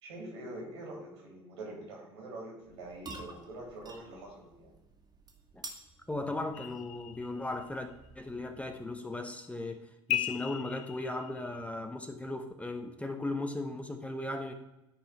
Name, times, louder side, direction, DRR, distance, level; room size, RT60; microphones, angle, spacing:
voice 1, 0.0-4.7, right 1 dB, 85° right, -1 dB, 3.0 m, -45 dB
sound 1, 2.6-9.0, right 3 dB, 30° right, 1.8 m, -51 dB
voice 2, 6.1-14.5, left 2 dB, 10° left, 6 dB, 1.0 m, -37 dB
sound 2, 6.5-7.8 10.1-11.6, left 14 dB, 60° left, 0.4 m, -37 dB
10.5 x 4.0 x 4.9 m, 0.94 s
hypercardioid pair, 70°, 14 cm